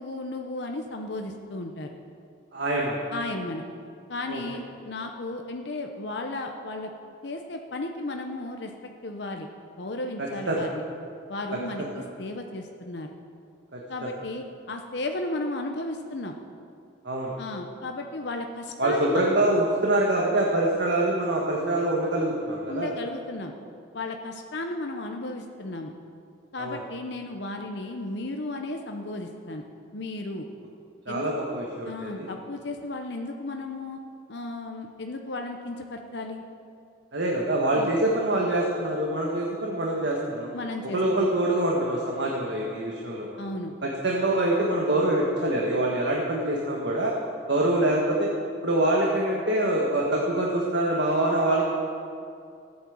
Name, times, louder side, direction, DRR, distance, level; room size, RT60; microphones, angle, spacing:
voice 1, 0.0-1.9 3.1-3.6 4.1-6.9 7.2-9.5 9.8-10.8 11.3-13.1 13.9-16.3 17.4-19.3 22.7-23.5 23.9-25.9 26.5-29.7 29.9-30.5 31.1-31.3 31.9-34.0 34.3-36.4 37.7-37.9 40.5-41.3 43.4-43.7, left 2 dB, 65° left, 3 dB, 0.8 m, -34 dB
voice 2, 2.5-3.0 4.3-4.4 10.2-10.6 11.8-11.9 13.7-14.1 17.0-17.3 18.8-22.9 26.6-26.8 31.0-32.3 37.1-40.5 40.9-43.4 43.8-47.1 47.5-48.3 48.6-51.7, right 1 dB, 65° right, -3 dB, 1.6 m, -25 dB
14.0 x 8.8 x 7.2 m, 2.4 s
head